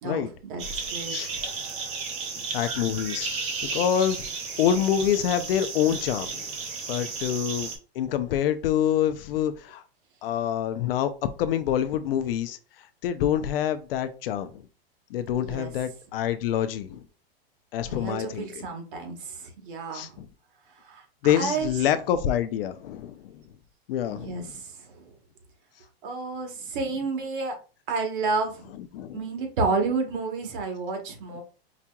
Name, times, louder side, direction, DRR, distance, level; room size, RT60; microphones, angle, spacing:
voice 1, 0.0-0.6 0.9-1.4 15.4-15.7 17.9-20.1 20.8-21.7 24.1-25.0 26.0-27.5 27.9-28.7 29.1-31.4, right 4 dB, 55° right, 1.2 m, -31 dB
sound 1, 0.6-7.8, right 4 dB, 20° right, 0.7 m, -33 dB
voice 2, 2.3-3.3 3.7-4.3 4.6-6.5 6.9-9.8 10.2-11.1 11.4-12.6 13.0-14.6 15.1-17.0 17.7-18.7 19.9-20.3 21.2-23.4 23.9-24.5 28.9-29.2, left 10 dB, 65° left, 0.6 m, -26 dB
4.9 x 2.9 x 2.3 m
supercardioid pair, 160°, 31 cm